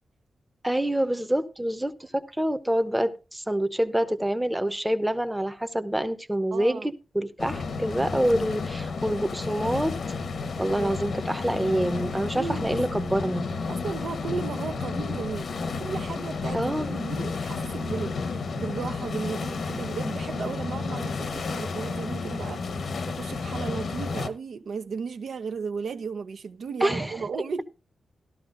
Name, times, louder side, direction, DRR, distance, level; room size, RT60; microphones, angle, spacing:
voice 1, 0.6-10.0 10.6-13.5 16.5-17.0 26.8-27.1 27.3-27.4, right 1 dB, 5° right, 0.8 m, -26 dB
voice 2, 6.5-6.9 10.7-10.9 12.4-12.8 13.7-22.7 23.1-27.6, right 5 dB, 65° right, 0.7 m, -35 dB
sound 1, 7.4-24.3, left 4 dB, 65° left, 1.1 m, -32 dB
15.0 x 12.5 x 2.5 m
wide cardioid pair, 140°, 0 cm